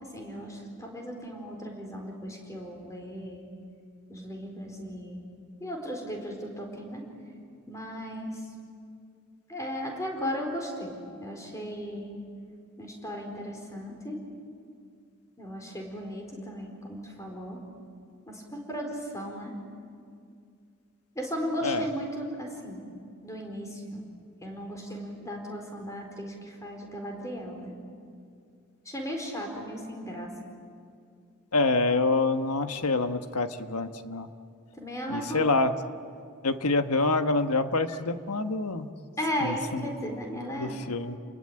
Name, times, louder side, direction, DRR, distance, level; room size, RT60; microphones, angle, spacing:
voice 1, 0.0-3.4 4.1-5.2 5.6-7.0 7.7-8.5 9.5-12.1 12.8-14.2 15.4-17.6 18.3-19.6 21.1-22.8 23.2-24.0 24.4-27.7 28.8-30.3 34.7-35.5 39.2-40.8, equal, 15° left, 2 dB, 4.4 m, -36 dB
voice 2, 31.5-34.3 35.1-35.7 36.4-38.9 39.4-39.8 40.6-41.1, left 3 dB, 90° left, 8 dB, 1.3 m, -26 dB
29.5 x 21.0 x 8.9 m, 2.3 s
head